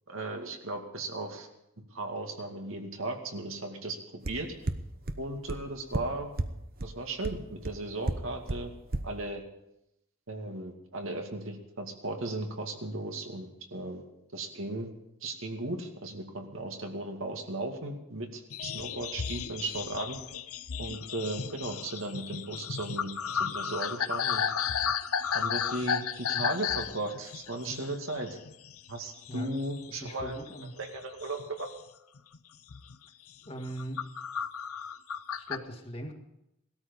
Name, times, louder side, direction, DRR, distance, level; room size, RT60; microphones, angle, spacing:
voice 1, 0.1-1.5 1.9-4.0 4.3-4.5 5.2-6.3 6.8-8.7 9.0-9.4 10.3-14.1 14.3-14.9 15.2-20.2 20.8-24.4 25.3-28.4 28.9-30.4 30.8-31.7, right 2 dB, 65° right, 3 dB, 2.3 m, -36 dB
sound 1, 4.3-4.4 4.7-4.8 5.1-5.2 5.5-5.6 5.9-6.0 6.4-6.5 6.8-6.9 7.2-7.3 7.6-7.7 8.1-8.2 8.5-8.6 8.9-9.0, right 2 dB, 45° right, 0.9 m, -29 dB
sound 2, 18.5-29.0 29.2-29.9 30.2-31.7 32.2-32.4 32.7-33.0 33.5-35.6, left 7 dB, 90° left, 0.8 m, -34 dB
voice 2, 29.9-30.7 33.5-34.0 35.4-36.1, right 1 dB, 25° left, 3 dB, 1.9 m, -39 dB
18.5 x 13.0 x 5.4 m, 0.85 s
head